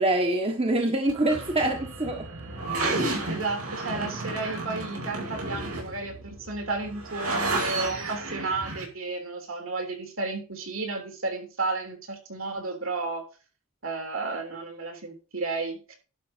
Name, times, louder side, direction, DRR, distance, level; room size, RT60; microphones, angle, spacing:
voice 1, 0.0-2.3, right 1 dB, 25° right, 1.4 m, -25 dB
sound 1, 1.1-8.8, right 2 dB, 90° right, 4.8 m, -32 dB
voice 2, 3.3-13.3 13.8-16.0, right 3 dB, 65° right, 3.4 m, -32 dB
11.5 x 5.7 x 5.2 m
head